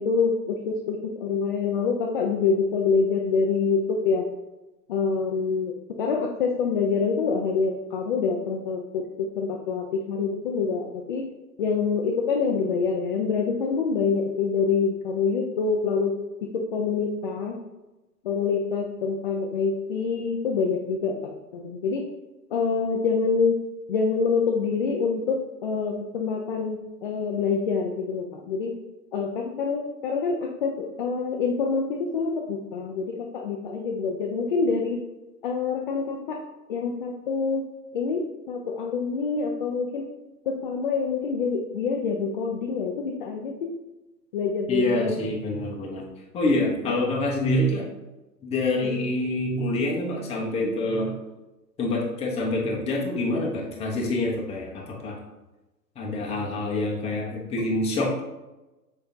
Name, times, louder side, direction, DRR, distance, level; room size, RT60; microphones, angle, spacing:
voice 1, 0.0-4.2 4.9-11.2 11.6-16.2 16.7-17.6 18.2-22.1 22.5-23.5 23.9-28.7 29.1-35.0 35.4-36.4 36.7-37.7 37.9-40.1 40.5-43.7 44.3-45.1 46.8-46.9 48.8-49.0, left 5 dB, 35° left, 1 dB, 0.5 m, -26 dB
voice 2, 44.7-46.0 46.3-47.8 48.4-51.1 51.8-55.2 56.0-58.2, left 1 dB, 10° left, -2 dB, 1.0 m, -26 dB
6.7 x 5.3 x 2.7 m, 1.1 s
figure-of-eight pair, 120°, 49 cm